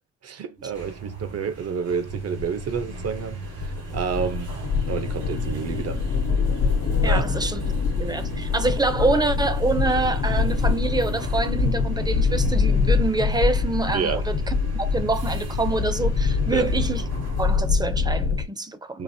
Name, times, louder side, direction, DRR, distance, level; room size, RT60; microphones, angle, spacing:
voice 1, 0.2-4.5 4.8-6.0 7.1-7.4 13.9-14.2 16.5-16.7 18.9-19.0, right 6 dB, 55° right, 0.8 m, -29 dB
sound 1, 0.6-17.7, right 5 dB, 75° right, 2.1 m, -38 dB
sound 2, 2.1-18.5, left 5 dB, 70° left, 1.1 m, -25 dB
sound 3, 4.7-12.8, left 9 dB, 55° left, 0.5 m, -39 dB
voice 2, 7.0-7.6 8.0-17.0 17.4-19.0, right 2 dB, 15° right, 0.7 m, -26 dB
4.9 x 2.4 x 2.8 m
cardioid pair, 90°, 30 cm